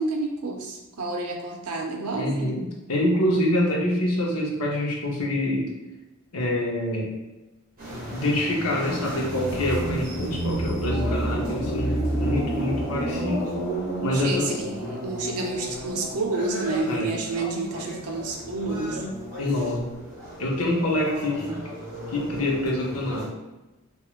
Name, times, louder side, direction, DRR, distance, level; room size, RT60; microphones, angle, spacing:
voice 1, 0.0-2.6 13.9-19.2, right 2 dB, 90° right, 2 dB, 0.5 m, -30 dB
voice 2, 2.1-5.7 6.3-7.1 8.1-13.4 14.0-14.6 16.9-17.1 19.4-20.0 20.4-21.6 22.1-23.3, left 1 dB, 85° left, -2 dB, 0.7 m, -26 dB
sound 1, 7.8-23.3, right 1 dB, 40° right, 1.0 m, -31 dB
2.9 x 2.3 x 2.3 m, 1.1 s
head